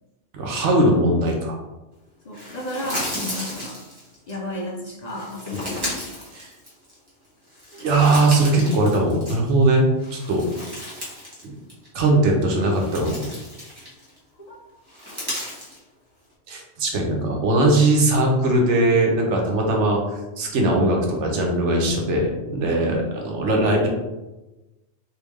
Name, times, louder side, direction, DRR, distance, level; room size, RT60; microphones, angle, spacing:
voice 1, 0.3-1.6 5.5-5.7 6.3-6.5 7.8-10.5 11.4-11.5 11.9-13.2 16.5-23.9, right 2 dB, 85° right, 0 dB, 1.1 m, -20 dB
voice 2, 2.2-3.8 4.3-6.1 7.7-7.8 10.6-10.7 14.4-14.6 22.8-23.0, left 1 dB, 50° left, -3 dB, 0.5 m, -33 dB
sound 1, 2.3-4.3 5.1-7.1 7.5-9.6 10.0-11.4 11.7-11.9 12.5-14.2 14.9-15.8, left 1 dB, 20° right, 1.2 m, -34 dB
3.5 x 2.7 x 3.1 m, 1.1 s
omnidirectional pair, 1.2 m